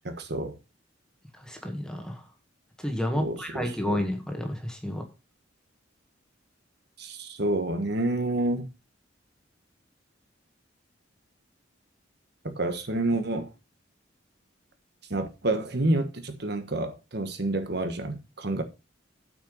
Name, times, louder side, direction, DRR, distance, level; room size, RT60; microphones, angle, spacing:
voice 1, 0.0-0.5 3.2-4.0 7.0-8.7 12.4-13.5 15.1-18.6, right 2 dB, 55° right, 1.4 m, -29 dB
voice 2, 1.3-2.3 2.8-5.0 18.6-18.7, left 1 dB, 5° left, 1.8 m, -31 dB
8.8 x 5.9 x 5.5 m
head